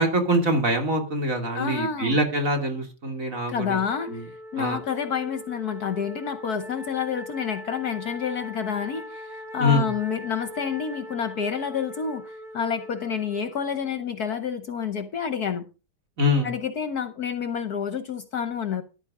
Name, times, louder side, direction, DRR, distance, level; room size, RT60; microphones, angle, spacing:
voice 1, 0.0-3.8 4.1-4.2 4.6-4.8 9.6-9.9 16.2-16.5, equal, 40° right, 3.0 m, -24 dB
voice 2, 1.5-2.2 3.5-4.2 4.5-15.6 16.4-18.8, left 7 dB, 55° left, 1.3 m, -29 dB
Wind instrument woodwind instrument, 3.7-14.0, equal, ahead, 2.2 m, -41 dB
13.5 x 11.5 x 3.7 m
omnidirectional pair, 2.2 m